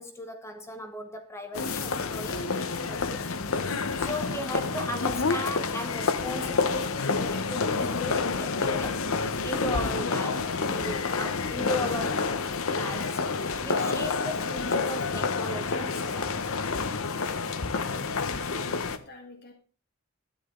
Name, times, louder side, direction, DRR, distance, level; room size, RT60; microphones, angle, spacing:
voice 1, 0.0-3.3 4.0-12.4 12.7-13.3 13.6-16.5, left 1 dB, 15° left, 1.1 m, -37 dB
sound 1, 1.5-19.0, left 4 dB, 65° left, 0.9 m, -29 dB
voice 2, 17.6-19.5, left 2 dB, 50° left, 1.8 m, -46 dB
12.5 x 10.5 x 3.8 m
head